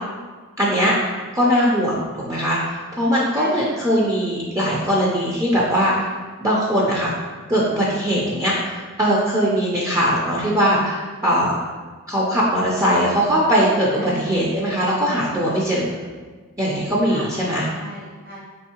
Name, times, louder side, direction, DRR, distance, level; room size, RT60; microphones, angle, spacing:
voice 1, 0.6-0.9 1.3-2.0 2.3-5.9 6.4-7.1 7.5-11.6 12.1-15.9 16.6-17.7, equal, 15° right, -6 dB, 0.4 m, -20 dB
voice 2, 3.3-3.8 13.9-14.4 17.0-18.4, right 1 dB, 45° right, -4 dB, 0.9 m, -36 dB
4.4 x 3.1 x 2.8 m, 1.4 s
head